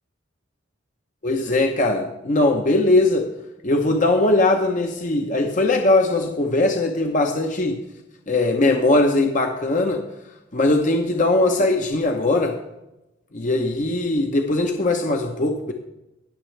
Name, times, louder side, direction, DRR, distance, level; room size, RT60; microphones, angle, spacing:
voice 1, 1.2-3.3 3.6-7.8 8.3-10.0 10.5-12.6 13.3-15.7, left 2 dB, 40° left, 3 dB, 0.8 m, -20 dB
19.0 x 6.8 x 3.3 m, 0.95 s
head